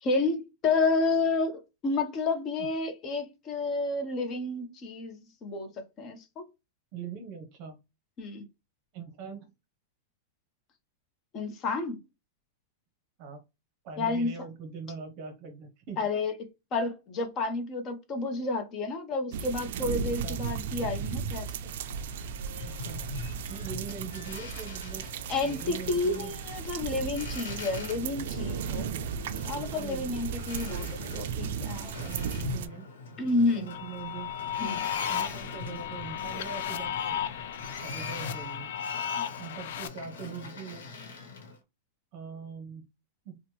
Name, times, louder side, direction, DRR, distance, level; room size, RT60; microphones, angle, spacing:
voice 1, 0.0-6.4 8.2-8.4 11.3-12.0 14.0-14.3 16.0-16.3 16.7-21.5 25.3-28.9 29.4-31.9 33.2-33.7 34.6-34.8, left 3 dB, 30° left, 0.6 m, -30 dB
voice 2, 6.9-7.8 8.9-9.5 13.2-13.4 13.8-16.0 20.2-20.5 22.6-23.1 23.5-25.1 25.4-26.3 28.8-29.0 29.7-30.1 32.0-32.9 33.5-34.3 35.1-37.2 37.8-38.7 39.4-40.9 42.1-42.9 43.2-43.4, right 6 dB, 45° right, 0.7 m, -42 dB
sound 1, 19.3-32.7, right 7 dB, 65° right, 0.3 m, -36 dB
Boat Water vehicle, 21.8-41.6, left 3 dB, 90° left, 0.9 m, -43 dB
sound 2, 33.7-39.9, left 9 dB, 70° left, 0.4 m, -34 dB
2.9 x 2.0 x 3.1 m
supercardioid pair, 145°, 0 cm